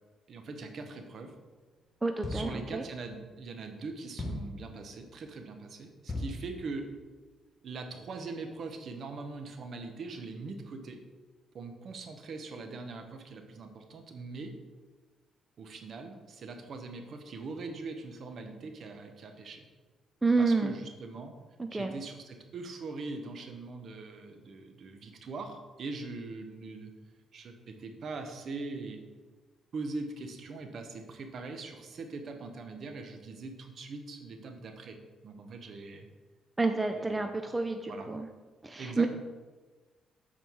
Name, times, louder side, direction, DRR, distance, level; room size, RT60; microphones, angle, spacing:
voice 1, 0.3-1.3 2.3-6.9 7.6-11.0 11.5-14.5 15.6-19.6 20.4-21.3 21.7-26.9 27.3-29.0 29.7-35.0 35.2-36.1 36.9-37.5 37.9-38.1 38.8-39.1, right 3 dB, 55° right, 5 dB, 1.0 m, -42 dB
voice 2, 2.0-2.8 20.2-20.7 21.6-21.9 36.6-38.3 38.6-39.1, right 3 dB, 15° right, 6 dB, 0.5 m, -29 dB
sound 1, 2.2-2.7 4.2-4.6 6.1-6.5, left 1 dB, 35° left, 1.2 m, -36 dB
7.2 x 4.3 x 4.6 m, 1.3 s
cardioid pair, 90°, 0 cm